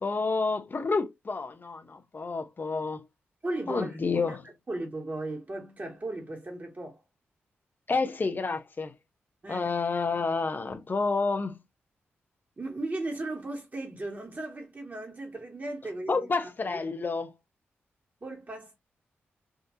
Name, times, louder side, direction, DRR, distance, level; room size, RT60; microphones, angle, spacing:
voice 1, 0.0-3.0 3.7-4.4 7.9-8.9 9.5-11.6 16.1-17.3, left 4 dB, 45° left, 0.7 m, -29 dB
voice 2, 3.4-4.4 4.7-7.0 9.4-9.7 12.6-16.3 16.6-16.8 18.2-18.8, right 2 dB, 40° right, 2.0 m, -36 dB
3.6 x 2.6 x 2.7 m
supercardioid pair, 50°, 5 cm